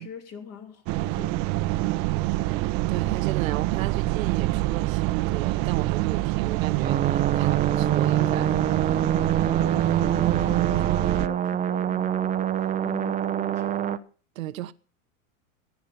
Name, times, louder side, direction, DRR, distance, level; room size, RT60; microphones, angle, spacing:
voice 1, 0.0-1.4 9.4-13.8, left 7 dB, 40° left, 3.1 m, -43 dB
sound 1, 0.9-11.3, right 18 dB, 50° right, 0.8 m, -26 dB
voice 2, 1.8-2.2 2.5-8.7 14.3-14.7, right 15 dB, 80° right, 1.1 m, -34 dB
sound 2, 6.8-14.0, right 9 dB, 20° right, 0.8 m, -26 dB
15.5 x 9.4 x 5.8 m
supercardioid pair, 125°, 40 cm